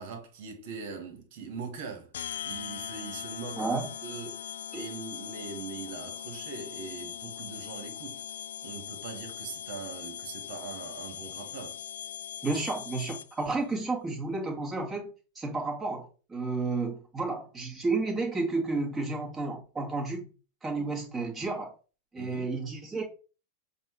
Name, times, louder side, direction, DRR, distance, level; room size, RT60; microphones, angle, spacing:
voice 1, 0.0-2.1 2.4-8.2 8.6-11.8 22.2-22.5, right 5 dB, 50° right, 1.8 m, -41 dB
sound 1, 2.1-13.5, left 9 dB, 60° left, 0.4 m, -40 dB
voice 2, 3.6-3.9 4.7-4.8 12.4-15.1 15.4-20.3 20.6-21.7 22.1-23.0, right 3 dB, 15° right, 2.2 m, -31 dB
7.6 x 2.8 x 4.9 m
figure-of-eight pair, 90°, 0 cm